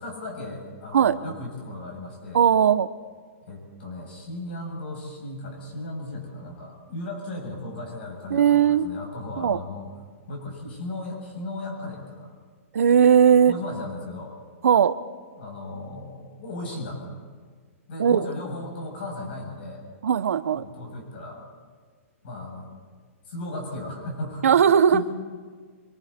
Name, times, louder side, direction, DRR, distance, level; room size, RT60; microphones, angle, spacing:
voice 1, 0.0-2.4 3.5-9.9 10.3-12.3 13.4-14.3 15.4-17.1 17.9-19.8 20.5-21.4 22.2-22.7 23.3-24.5 24.9-25.0, left 2 dB, 45° left, 0 dB, 7.8 m, -36 dB
voice 2, 2.3-2.9 8.3-8.9 9.4-9.6 12.7-13.5 14.6-14.9 18.0-18.3 20.0-20.6 24.4-25.0, right 8 dB, 75° right, 13 dB, 0.9 m, -18 dB
26.0 x 24.5 x 4.4 m, 1.6 s
hypercardioid pair, 180°, 8 cm